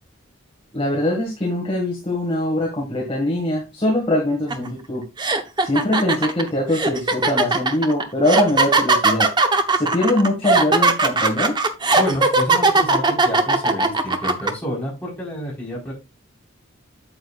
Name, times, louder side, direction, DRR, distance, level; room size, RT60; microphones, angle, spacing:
voice 1, 0.7-5.0 5.6-9.3 9.7-11.6, left 1 dB, 25° left, -2 dB, 1.9 m, -22 dB
sound 1, 4.5-4.7 5.2-14.5, right 3 dB, 20° right, 0.7 m, -18 dB
voice 2, 12.0-15.9, equal, 5° left, -4 dB, 4.3 m, -29 dB
9.0 x 7.9 x 2.4 m, 0.26 s
head